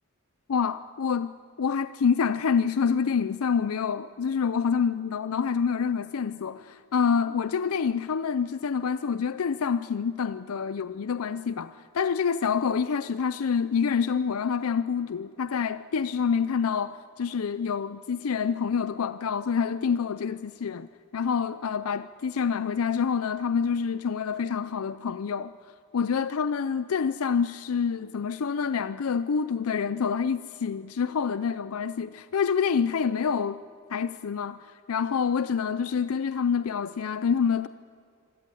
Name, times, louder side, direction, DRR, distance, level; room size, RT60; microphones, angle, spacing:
voice 1, 0.5-20.9 21.1-25.5 25.9-33.6 33.9-37.7, left 6 dB, 75° left, 0.5 m, -27 dB
25.5 x 16.5 x 9.9 m
head